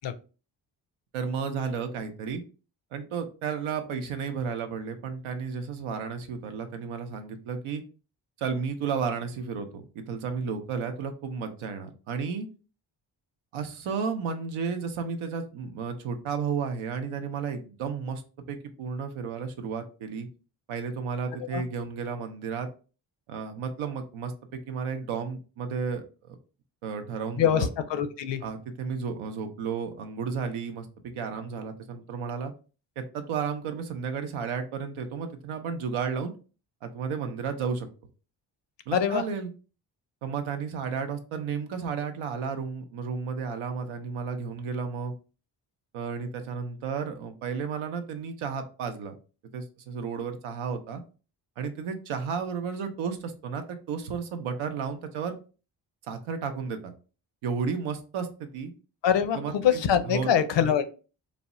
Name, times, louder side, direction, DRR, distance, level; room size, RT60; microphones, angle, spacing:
voice 1, 1.1-2.4 2.9-7.8 8.4-12.5 13.5-18.2 18.5-20.3 20.7-22.7 23.3-26.4 26.8-27.7 28.4-32.5 33.0-36.3 36.8-37.9 38.9-39.5 40.2-45.1 45.9-49.1 49.5-51.0 51.6-55.3 56.1-56.9 57.4-58.7 59.3-60.3, right 6 dB, 75° right, 7 dB, 0.7 m, -33 dB
voice 2, 27.4-28.4 38.9-39.2 59.0-60.9, left 8 dB, 60° left, 10 dB, 0.5 m, -24 dB
3.3 x 2.1 x 2.5 m, 0.35 s
supercardioid pair, 40°, 49 cm